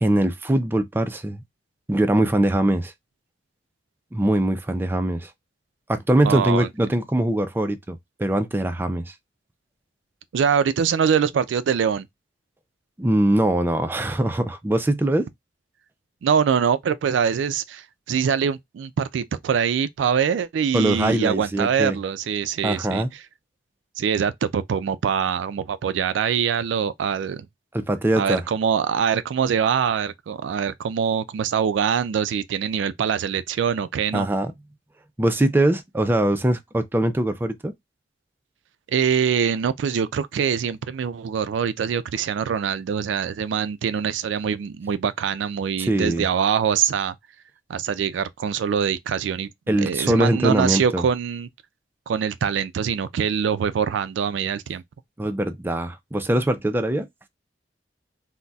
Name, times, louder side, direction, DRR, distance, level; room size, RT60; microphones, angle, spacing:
voice 1, 0.0-1.4 1.9-2.9 4.1-5.3 5.9-9.1 13.0-15.3 20.7-22.0 22.6-23.1 27.7-28.4 34.1-34.5 35.2-37.7 45.8-46.3 49.7-51.0 55.2-57.1, right 1 dB, 10° right, 0.3 m, -22 dB
voice 2, 6.2-6.7 10.3-12.1 16.2-23.0 24.0-27.5 28.2-34.3 38.9-47.1 47.7-51.5 52.1-54.8, right 7 dB, 85° right, 0.3 m, -24 dB
3.9 x 2.1 x 2.2 m
head